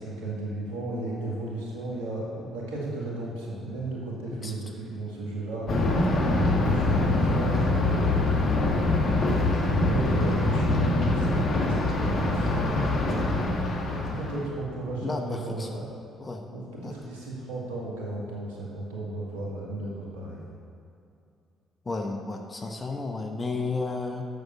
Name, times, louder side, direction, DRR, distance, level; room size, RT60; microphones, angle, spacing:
voice 1, 0.0-5.7 6.2-8.6 9.5-13.5 14.1-15.9 16.5-20.4, right 2 dB, 85° right, -4 dB, 2.1 m, -35 dB
Thunder, 5.7-14.5, left 2 dB, 55° left, 1.4 m, -24 dB
voice 2, 15.0-15.8 16.2-16.4 16.8-16.9 21.9-24.2, left 3 dB, 30° left, 4 dB, 0.9 m, -32 dB
7.9 x 6.9 x 7.2 m, 2.5 s
hypercardioid pair, 50°, 0 cm